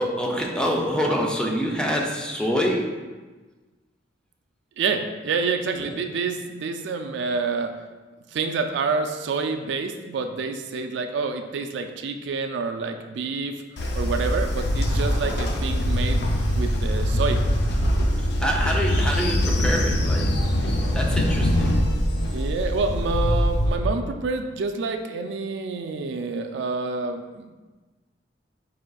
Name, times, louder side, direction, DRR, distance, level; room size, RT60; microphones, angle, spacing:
voice 1, 0.0-2.9 5.8-5.9 18.4-20.4 20.9-21.7, equal, 5° left, -1 dB, 0.4 m, -25 dB
voice 2, 4.8-7.7 8.3-13.6 14.0-16.2 16.5-17.4 22.3-27.5, right 4 dB, 65° right, 5 dB, 0.3 m, -28 dB
Train, 13.8-23.8, equal, 60° left, 0.5 m, -23 dB
4.9 x 3.8 x 2.3 m, 1.3 s
head